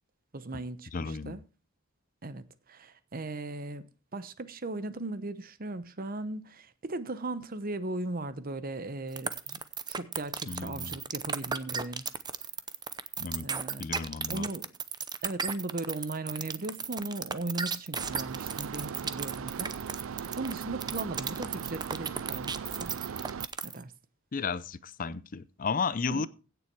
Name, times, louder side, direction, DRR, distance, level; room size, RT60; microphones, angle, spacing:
voice 1, 0.3-1.4 2.2-3.8 4.1-9.6 9.9-12.0 13.4-13.8 14.3-14.7 15.2-19.7 20.0-22.5 22.8-23.1 23.6-23.9 26.1-26.3, right 2 dB, 45° right, 0.9 m, -37 dB
voice 2, 0.9-1.4 10.5-11.0 13.2-13.5 13.8-14.5 24.3-26.3, left 5 dB, 40° left, 0.6 m, -33 dB
sound 1, 9.2-23.8, right 6 dB, 20° right, 0.7 m, -34 dB
sound 2, 18.0-23.5, right 6 dB, 75° right, 0.5 m, -39 dB
16.5 x 7.0 x 4.6 m
head